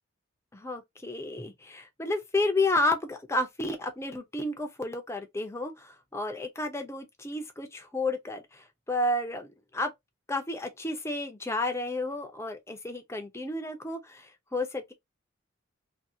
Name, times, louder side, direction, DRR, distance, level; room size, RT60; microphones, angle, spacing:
voice 1, 0.5-9.9 10.3-14.9, left 2 dB, 15° left, 0.7 m, -31 dB
2.9 x 2.8 x 2.7 m
head